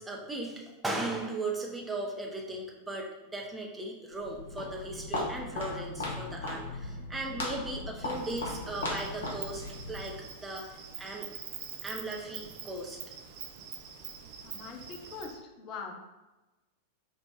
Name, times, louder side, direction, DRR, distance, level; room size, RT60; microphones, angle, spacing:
voice 1, 0.0-9.6 9.9-10.2 10.4-10.7 11.0-11.3 11.8-13.0, right 2 dB, 10° right, 0 dB, 0.6 m, -37 dB
Walk footsteps, 4.1-10.3, left 2 dB, 65° left, 0.9 m, -37 dB
Insect, 8.0-15.4, right 8 dB, 50° right, 0.4 m, -45 dB
voice 2, 14.4-16.0, left 5 dB, 40° left, 3 dB, 0.5 m, -42 dB
3.3 x 2.4 x 3.5 m, 1.1 s
figure-of-eight pair, 90°, 0 cm